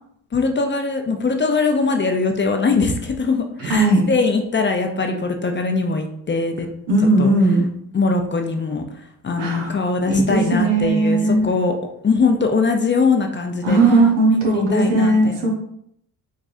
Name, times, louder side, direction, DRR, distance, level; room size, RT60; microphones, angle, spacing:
voice 1, 0.3-6.7 7.2-7.3 7.9-11.7 12.0-13.8 14.4-15.5, left 4 dB, 25° left, 4 dB, 0.5 m, -21 dB
voice 2, 6.9-7.7 9.4-9.7 10.1-11.5 13.6-15.5, right 2 dB, 80° right, -1 dB, 1.1 m, -17 dB
3.6 x 3.1 x 2.5 m, 0.73 s
supercardioid pair, 55°, 43 cm